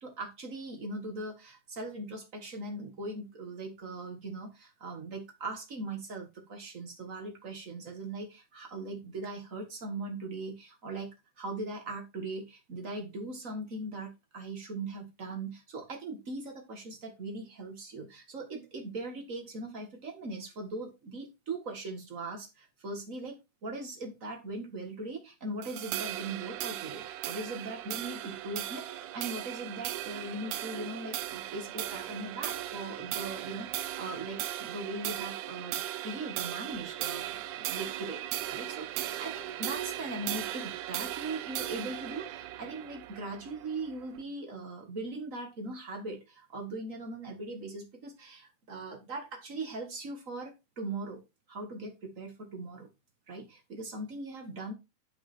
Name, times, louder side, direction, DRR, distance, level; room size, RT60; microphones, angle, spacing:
voice 1, 0.0-11.1 11.4-23.3 23.6-51.2 51.5-52.9 53.3-54.7, right 2 dB, 60° right, 3 dB, 0.8 m, -40 dB
sound 1, 25.6-44.2, right 13 dB, 80° right, 1.9 m, -37 dB
9.5 x 6.1 x 4.4 m, 0.25 s
omnidirectional pair, 4.3 m